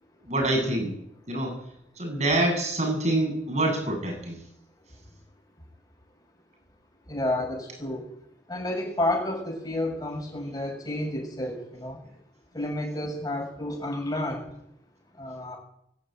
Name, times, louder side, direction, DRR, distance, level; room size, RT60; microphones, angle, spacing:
voice 1, 0.3-0.9 1.3-1.6 2.0-4.4, right 1 dB, 40° right, 2 dB, 7.9 m, -26 dB
voice 2, 7.1-8.1 8.5-12.0 12.5-14.5 15.2-15.6, left 1 dB, 20° left, -1 dB, 6.8 m, -30 dB
23.0 x 14.0 x 9.3 m, 0.75 s
head